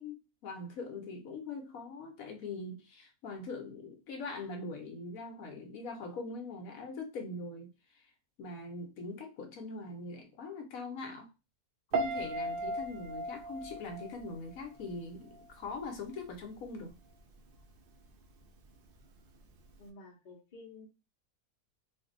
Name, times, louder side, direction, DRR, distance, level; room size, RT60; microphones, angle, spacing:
voice 1, 0.0-8.1 8.4-11.3 11.9-16.9, left 3 dB, 70° left, 1.1 m, -42 dB
Piano, 11.9-15.0 15.3-15.7, right 2 dB, 80° right, 0.4 m, -36 dB
voice 2, 19.8-20.9, left 3 dB, 40° left, 0.8 m, -51 dB
2.6 x 2.5 x 3.6 m
omnidirectional pair, 1.6 m